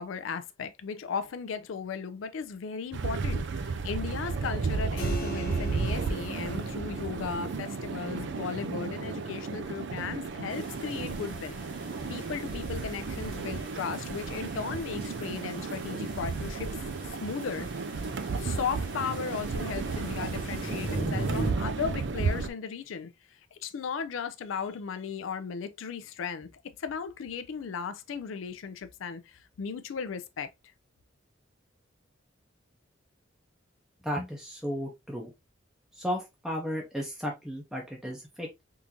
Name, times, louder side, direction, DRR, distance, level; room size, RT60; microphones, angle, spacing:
voice 1, 0.0-11.6 12.1-16.7 17.1-17.7 18.4-30.5, left 6 dB, 80° left, 0.4 m, -36 dB
sound 1, 2.9-22.5, right 4 dB, 65° right, 0.4 m, -33 dB
Keyboard (musical), 5.0-15.2, right 1 dB, 50° left, 1.2 m, -46 dB
sound 2, 10.5-21.5, right 2 dB, 80° right, 1.7 m, -39 dB
voice 2, 34.0-35.3 36.0-38.6, equal, ahead, 0.6 m, -34 dB
3.7 x 2.5 x 2.8 m
head